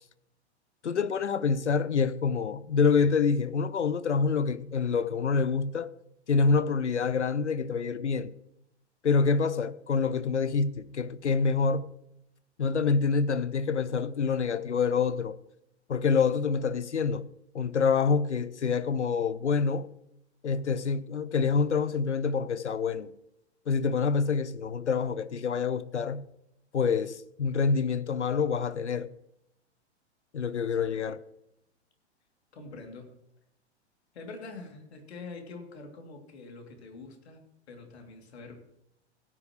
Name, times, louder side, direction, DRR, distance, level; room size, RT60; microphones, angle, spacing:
voice 1, 0.8-5.9 6.3-8.3 9.0-11.9 12.6-15.4 15.9-17.3 17.5-19.9 20.4-23.1 23.7-26.2 26.7-29.1 30.3-31.2, left 5 dB, 85° left, 0.7 m, -26 dB
voice 2, 30.8-31.1 32.5-33.1 34.1-37.4 37.7-38.8, left 3 dB, 65° left, 2.9 m, -45 dB
16.5 x 9.8 x 3.1 m
figure-of-eight pair, 95°, 34 cm